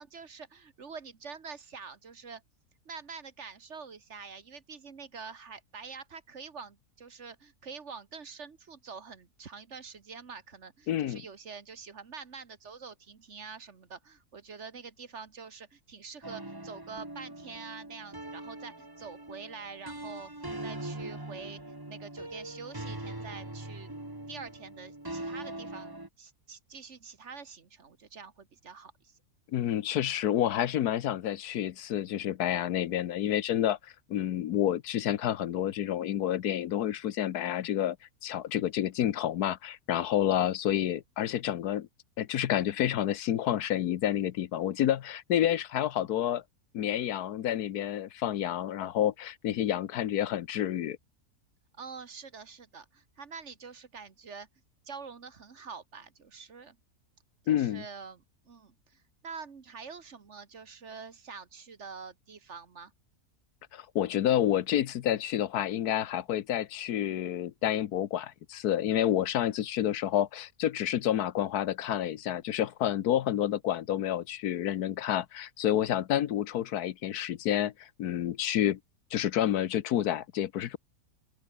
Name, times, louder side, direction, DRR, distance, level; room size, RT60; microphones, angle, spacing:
voice 1, 0.0-2.4 2.9-20.3 20.6-21.6 21.9-23.9 24.3-29.2 51.8-54.5 54.9-56.8 57.4-62.9, right 5 dB, 50° right, 1.7 m, -46 dB
voice 2, 10.9-11.2 29.5-38.0 38.2-41.9 42.2-46.4 46.7-51.0 57.5-57.8 63.7-78.8 79.1-80.8, left 11 dB, 80° left, 1.4 m, -29 dB
sound 1, 16.2-26.1, right 1 dB, 15° right, 2.1 m, -42 dB
open air
omnidirectional pair, 1.6 m